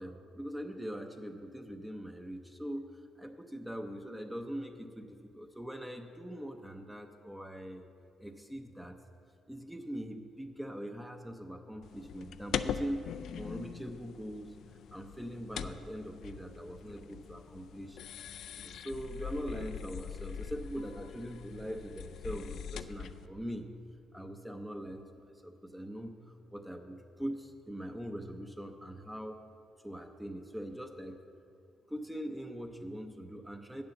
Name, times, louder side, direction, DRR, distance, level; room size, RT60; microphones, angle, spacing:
voice 1, 0.0-2.9 3.2-7.9 8.2-9.0 9.5-13.0 13.4-14.6 14.9-18.0 18.6-23.7 24.1-29.4 29.8-31.2 31.9-33.8, equal, 5° right, 5 dB, 0.6 m, -42 dB
sound 1, 11.8-23.3, left 8 dB, 70° left, 0.3 m, -42 dB
8.9 x 6.8 x 6.9 m, 2.5 s
cardioid pair, 90°, 0 cm